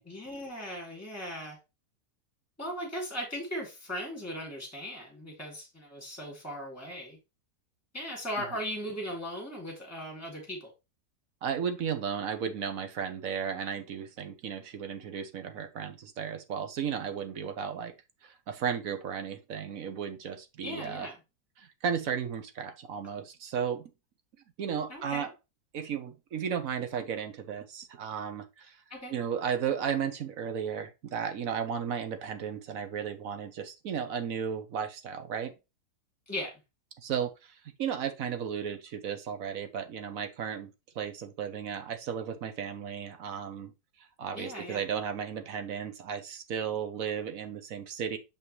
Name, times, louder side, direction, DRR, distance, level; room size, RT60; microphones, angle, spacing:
voice 1, 0.0-1.6 2.6-7.2 7.9-10.7 20.6-21.2 24.9-25.3 28.9-29.1 36.3-36.5 44.3-44.8, equal, 10° left, 2.7 m, -38 dB
voice 2, 11.4-17.9 18.2-21.1 21.6-23.9 24.6-25.3 25.7-28.8 29.1-35.5 37.0-37.3 37.8-40.7 40.9-43.7 44.2-48.2, right 7 dB, 60° right, 1.3 m, -34 dB
7.0 x 5.5 x 3.1 m
omnidirectional pair, 1.8 m